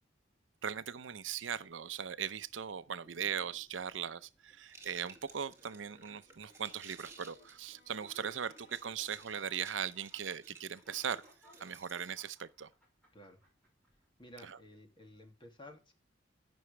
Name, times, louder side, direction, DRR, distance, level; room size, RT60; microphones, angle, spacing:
voice 1, 0.6-11.2 11.6-12.7 14.4-14.6, right 8 dB, 80° right, 0.6 m, -39 dB
sound 1, 0.7-14.3, left 1 dB, 5° left, 5.4 m, -65 dB
sound 2, 4.7-12.2, right 4 dB, 15° right, 2.2 m, -57 dB
Bowed string instrument, 5.5-9.3, left 4 dB, 50° left, 4.7 m, -69 dB
voice 2, 14.2-15.9, left 1 dB, 25° left, 2.5 m, -54 dB
14.0 x 6.3 x 3.3 m
head